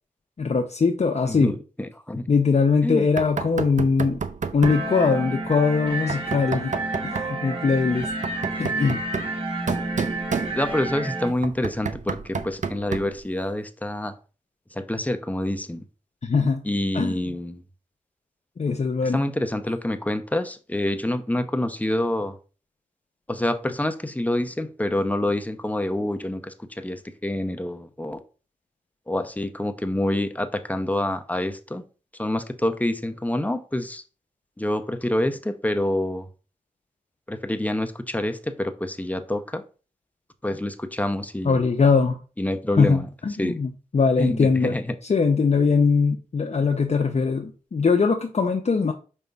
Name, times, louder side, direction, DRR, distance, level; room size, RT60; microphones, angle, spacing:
voice 1, 0.4-1.6 2.3-4.2 4.5-6.8 7.0-8.1 8.6-9.0 16.2-16.6 16.9-17.2 18.6-19.2 41.4-42.2 42.7-44.8 45.0-48.9, left 5 dB, 45° left, 0.7 m, -21 dB
voice 2, 1.2-2.3 2.8-3.1 10.5-14.1 14.8-15.8 16.6-17.6 19.0-22.3 23.3-28.2 29.1-31.8 32.2-34.0 34.6-36.3 37.3-39.6 40.4-41.6 42.4-43.1 43.4-43.6 44.2-44.9, left 1 dB, 10° left, 0.7 m, -27 dB
Knock, 3.2-4.9 6.1-7.4 8.0-10.9 11.4-13.2, right 5 dB, 55° right, 0.6 m, -30 dB
sound 1, 4.6-11.3, right 2 dB, 40° right, 2.1 m, -30 dB
5.4 x 5.2 x 3.4 m
wide cardioid pair, 75°, 15 cm